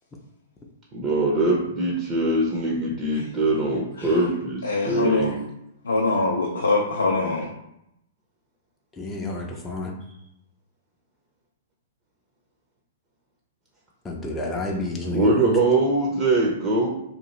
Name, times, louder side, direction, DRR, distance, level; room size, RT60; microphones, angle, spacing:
voice 1, 0.9-5.3 15.1-16.9, right 2 dB, 30° right, -3 dB, 0.6 m, -22 dB
voice 2, 4.6-5.3 5.9-7.5, left 3 dB, 90° left, -2 dB, 0.4 m, -23 dB
voice 3, 9.0-9.9 14.0-15.3, left 2 dB, 15° left, -1 dB, 0.4 m, -30 dB
2.8 x 2.2 x 3.1 m, 0.82 s
hypercardioid pair, 120°, 0 cm